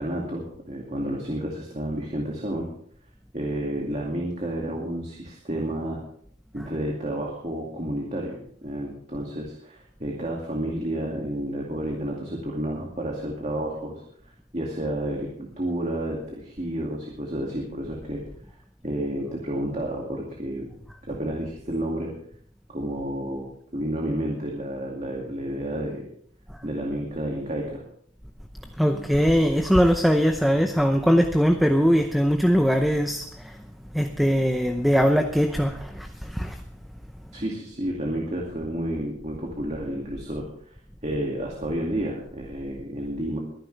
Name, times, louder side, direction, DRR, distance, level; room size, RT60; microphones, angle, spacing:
voice 1, 0.0-2.7 3.3-6.0 6.5-14.0 14.5-18.2 18.8-20.7 21.1-22.1 22.7-26.0 26.6-27.8 37.3-40.4 41.0-43.4, right 1 dB, 35° right, -1 dB, 2.5 m, -30 dB
voice 2, 28.8-33.6 33.9-36.6, equal, ahead, 5 dB, 0.7 m, -21 dB
23.0 x 10.5 x 3.4 m, 0.64 s
head